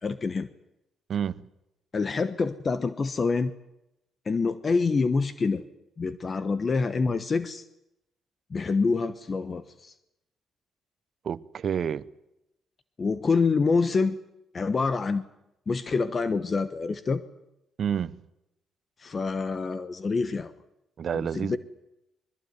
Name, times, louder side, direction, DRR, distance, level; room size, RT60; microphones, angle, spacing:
voice 1, 0.0-0.5 1.9-3.5 4.2-5.6 6.0-7.6 8.5-9.9 13.0-14.2 14.5-15.2 15.7-17.2 19.0-20.5 21.1-21.6, left 4 dB, 35° left, 1.1 m, -26 dB
voice 2, 1.1-1.5 11.2-12.1 17.8-18.2 21.0-21.6, right 8 dB, 55° right, 0.9 m, -29 dB
22.0 x 21.5 x 9.5 m
cardioid pair, 90°, 0 cm